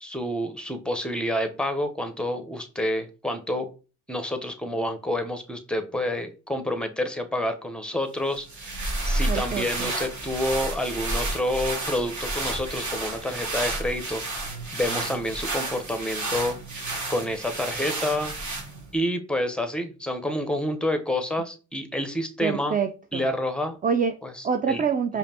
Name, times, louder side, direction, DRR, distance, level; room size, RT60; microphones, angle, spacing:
voice 1, 0.0-3.7 4.1-16.6 17.1-18.3 18.9-22.8 23.1-23.8 24.2-24.8, left 1 dB, ahead, 7 dB, 0.8 m, -28 dB
sound 1, 8.3-19.0, right 2 dB, 45° right, 1.3 m, -31 dB
voice 2, 9.3-9.9 22.4-23.2 23.8-24.1 24.4-25.2, right 6 dB, 20° right, 7 dB, 0.4 m, -26 dB
4.9 x 2.7 x 2.8 m, 0.34 s
hypercardioid pair, 50°, 41 cm